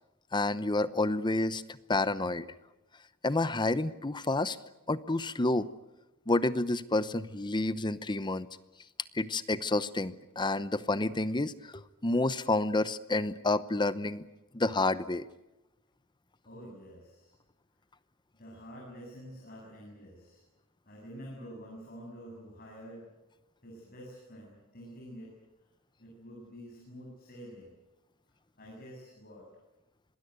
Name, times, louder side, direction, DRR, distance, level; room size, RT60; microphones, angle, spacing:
voice 1, 0.3-1.6 1.9-2.5 3.2-4.6 4.9-5.7 6.3-8.5 9.1-14.2 14.5-15.2, left 2 dB, 20° left, 15 dB, 0.8 m, -29 dB
voice 2, 16.4-17.3 18.4-20.4 20.8-23.1 23.6-25.3 26.0-27.7 28.6-29.5, equal, 45° left, -2 dB, 7.9 m, -48 dB
26.0 x 20.5 x 9.5 m, 0.98 s
head